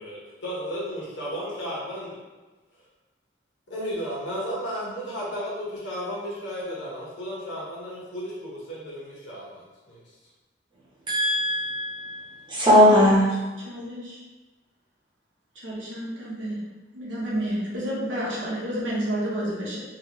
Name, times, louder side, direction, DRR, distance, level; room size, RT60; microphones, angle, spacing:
voice 1, 0.0-2.2 3.7-10.0, equal, 65° left, -7 dB, 1.3 m, -34 dB
voice 2, 11.1-13.3, equal, 25° right, -7 dB, 1.1 m, -19 dB
voice 3, 13.6-14.2 15.5-16.6 16.9-19.8, equal, 75° right, -5 dB, 1.0 m, -30 dB
3.1 x 3.0 x 3.1 m, 1.2 s
head